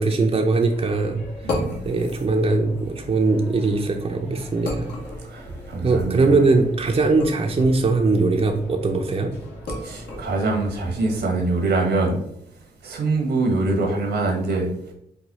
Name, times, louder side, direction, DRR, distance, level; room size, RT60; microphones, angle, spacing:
voice 1, 0.0-4.9 5.8-9.3, right 3 dB, 35° right, 3 dB, 0.6 m, -21 dB
sound 1, 0.7-11.2, left 1 dB, 70° left, 1.4 m, -36 dB
voice 2, 1.4-1.8 5.3-6.3 9.8-12.2 12.8-14.7, right 3 dB, 75° right, 1 dB, 1.2 m, -24 dB
4.9 x 2.2 x 4.1 m, 0.73 s
supercardioid pair, 40°, 18 cm